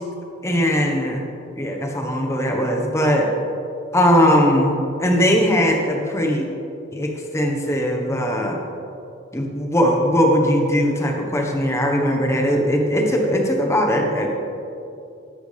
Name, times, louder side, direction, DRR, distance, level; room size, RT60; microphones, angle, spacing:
voice 1, 0.4-1.2 1.6-3.4 3.9-6.5 6.9-8.6 9.3-14.3, equal, 15° left, 1 dB, 1.2 m, -19 dB
12.5 x 11.0 x 3.4 m, 2.7 s
head